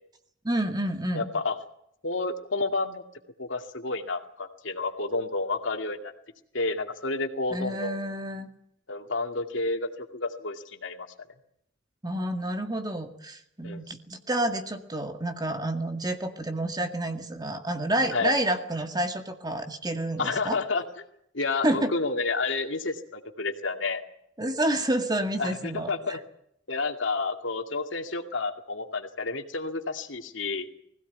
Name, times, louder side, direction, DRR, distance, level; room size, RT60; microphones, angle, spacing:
voice 1, 0.4-1.3 7.5-8.5 12.0-20.6 21.6-21.9 24.4-26.2, right 1 dB, 20° right, 6 dB, 2.1 m, -29 dB
voice 2, 1.1-1.6 2.0-3.0 3.4-6.1 6.5-8.0 8.9-11.1 13.6-13.8 18.1-18.3 20.2-20.8 21.3-24.0 25.4-26.2 26.7-30.7, left 3 dB, 75° left, 6 dB, 2.3 m, -30 dB
20.5 x 16.5 x 9.5 m, 0.73 s
head